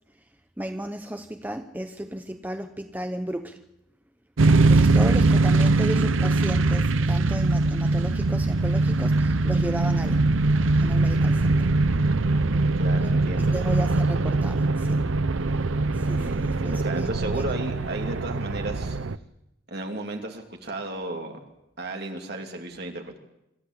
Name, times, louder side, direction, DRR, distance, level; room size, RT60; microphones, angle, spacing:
voice 1, 0.6-3.6 4.6-10.3 10.8-11.7 13.4-15.1 15.9-17.1 17.3-17.5, right 1 dB, 10° right, 7 dB, 0.8 m, -34 dB
sound 1, 4.4-19.2, right 2 dB, 80° right, 0.7 m, -22 dB
voice 2, 12.3-13.5 16.1-19.0 19.7-21.4 21.8-23.2, right 2 dB, 55° right, 3 dB, 2.8 m, -34 dB
26.0 x 13.5 x 8.2 m, 0.87 s
head